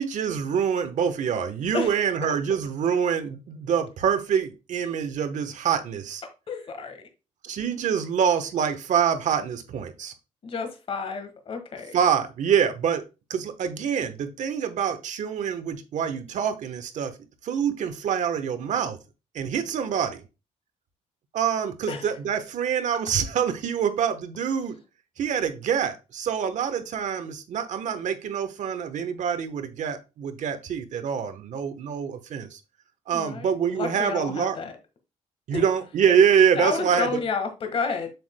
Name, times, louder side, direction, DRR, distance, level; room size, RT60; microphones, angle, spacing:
voice 1, 0.0-6.2 7.4-10.1 11.9-13.0 13.3-17.1 17.4-19.0 19.3-20.2 21.3-24.8 25.2-32.6 33.1-34.6 35.5-37.1, right 7 dB, 65° right, 1.1 m, -25 dB
voice 2, 6.5-7.0 10.4-12.0 21.9-22.1 33.1-34.7 35.5-35.6 36.5-38.1, left 5 dB, 45° left, 1.5 m, -31 dB
7.7 x 7.1 x 2.2 m
cardioid pair, 145°, 13 cm